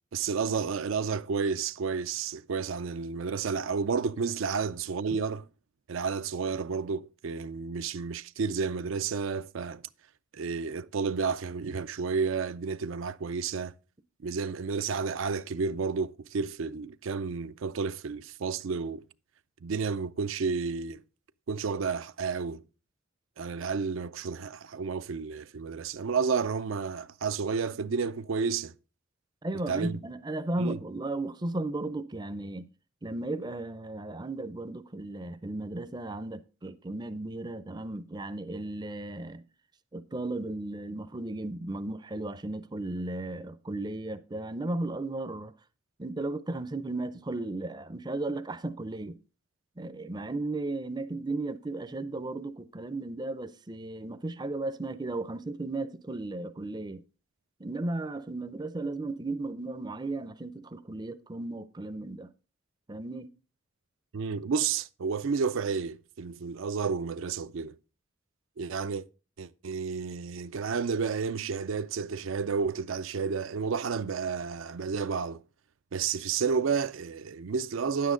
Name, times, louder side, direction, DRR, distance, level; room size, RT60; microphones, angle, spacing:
voice 1, 0.1-5.5 5.9-9.8 10.3-13.7 14.2-19.0 19.6-21.0 21.5-22.6 23.4-28.7 29.7-30.0 30.6-30.8 64.1-67.7 68.6-69.0 69.4-75.4 75.9-78.1, right 5 dB, 75° right, 0.4 m, -31 dB
voice 2, 29.4-32.7 33.0-39.4 39.9-45.5 46.0-49.2 49.8-57.0 57.6-62.3 62.9-63.3, right 2 dB, 20° right, 0.5 m, -35 dB
9.7 x 8.4 x 3.7 m
head